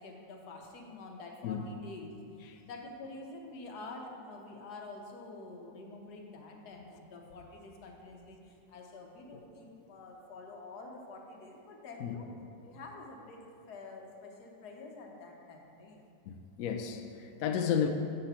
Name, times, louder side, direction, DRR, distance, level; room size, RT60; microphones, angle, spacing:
voice 1, 0.0-2.1 2.6-12.3 12.6-13.4 13.7-16.0 17.5-17.7, left 2 dB, 65° left, 1 dB, 1.3 m, -47 dB
voice 2, 16.3-17.9, left 8 dB, 85° left, 5 dB, 0.7 m, -32 dB
8.1 x 3.9 x 5.6 m, 2.6 s
omnidirectional pair, 2.0 m